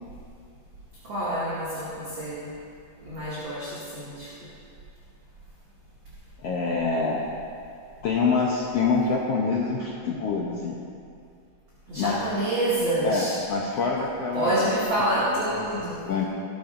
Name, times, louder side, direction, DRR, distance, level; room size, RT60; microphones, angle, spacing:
voice 1, 1.0-2.5 3.1-4.3 11.9-13.3 14.3-16.0, right 1 dB, 35° right, -10 dB, 2.7 m, -27 dB
voice 2, 6.4-7.2 8.0-10.7 12.0-12.2 13.0-14.6 15.5-15.8 16.0-16.2, left 4 dB, 75° left, -4 dB, 1.4 m, -26 dB
20.0 x 12.0 x 2.7 m, 2.4 s
omnidirectional pair, 4.2 m